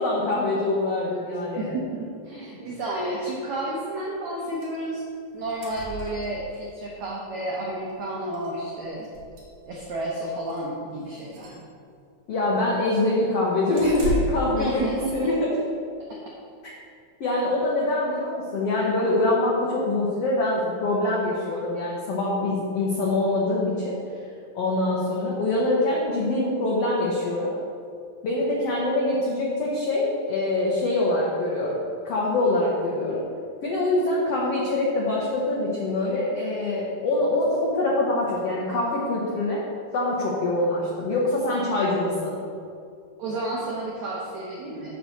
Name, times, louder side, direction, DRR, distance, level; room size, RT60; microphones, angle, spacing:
voice 1, 0.0-1.7 12.3-15.5 17.2-24.0 24.5-27.5 28.2-31.8 32.0-33.2 33.6-39.6 39.9-42.4, left 2 dB, 90° left, -4 dB, 1.3 m, -24 dB
voice 2, 1.6-5.0 5.3-9.1 9.7-11.7 14.5-15.5 16.1-16.2 25.1-25.2 43.2-45.0, right 1 dB, 75° right, -4 dB, 1.6 m, -31 dB
sound 1, 4.6-4.8 5.1-5.2 5.4-6.6 7.9-8.0 8.3-8.5 9.0-9.9 10.4-10.6 11.1-11.6 13.8-14.6, right 1 dB, 55° right, 2.0 m, -33 dB
7.5 x 4.5 x 6.7 m, 2.4 s
omnidirectional pair, 4.4 m